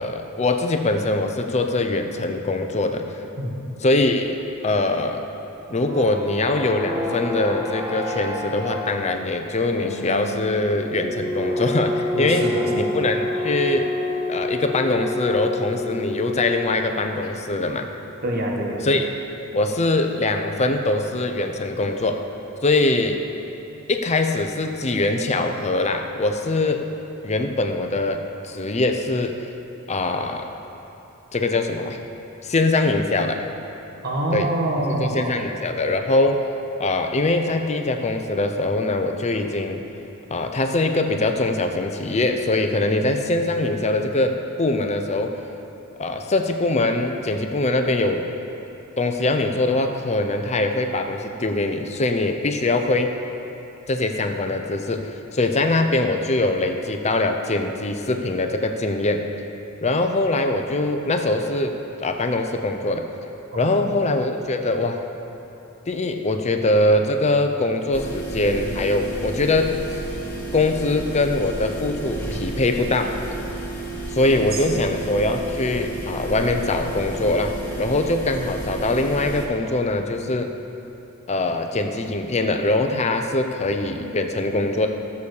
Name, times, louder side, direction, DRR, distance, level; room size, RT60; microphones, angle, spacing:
voice 1, 0.0-3.1 3.8-4.4 4.6-5.2 5.7-13.9 14.3-17.9 18.8-19.1 19.5-22.2 22.6-23.2 23.9-26.8 27.2-29.4 29.9-30.5 31.3-32.0 32.4-33.4 34.3-34.5 34.9-36.5 36.8-39.8 40.3-45.4 46.0-48.3 49.0-53.2 53.9-59.3 59.8-63.1 63.6-65.0 65.9-69.7 70.5-73.2 74.1-80.5 81.3-84.9, left 2 dB, 30° left, 5 dB, 0.7 m, -22 dB
sound 1, 5.6-16.9, left 1 dB, 15° right, 1.4 m, -29 dB
voice 2, 12.1-12.9 18.2-18.9 34.0-35.3 63.5-63.9 74.7-74.9, right 1 dB, 45° right, -1 dB, 1.5 m, -26 dB
sound 2, 67.9-79.5, right 2 dB, 10° left, 2.1 m, -32 dB
14.5 x 7.0 x 6.5 m, 3.0 s
head